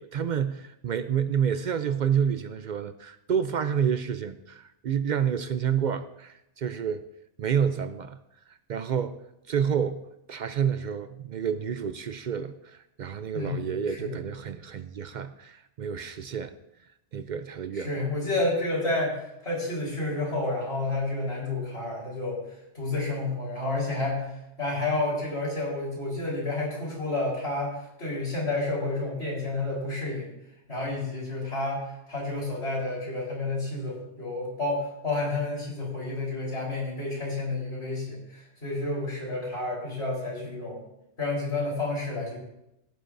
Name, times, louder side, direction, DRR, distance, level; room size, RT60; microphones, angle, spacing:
voice 1, 0.0-7.0 7.4-8.2 8.7-9.2 9.5-10.0 10.3-16.5 17.1-17.9, right 8 dB, 60° right, 12 dB, 0.5 m, -29 dB
voice 2, 13.3-14.2 17.7-24.3 24.6-30.3 30.7-40.8 41.2-42.4, left 2 dB, 60° left, -4 dB, 4.4 m, -30 dB
16.0 x 9.9 x 2.6 m, 0.85 s
omnidirectional pair, 1.2 m